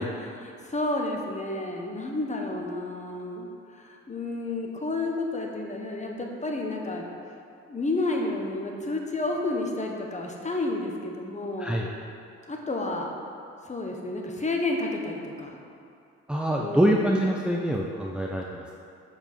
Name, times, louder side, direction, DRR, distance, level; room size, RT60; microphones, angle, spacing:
voice 1, 0.0-7.1 7.7-11.8 12.5-13.1 13.6-15.6 16.6-17.1, left 2 dB, 25° left, 1 dB, 1.4 m, -31 dB
voice 2, 16.3-18.8, right 1 dB, 5° right, -2 dB, 0.7 m, -25 dB
7.2 x 7.1 x 5.7 m, 2.5 s
cardioid pair, 90°, 30 cm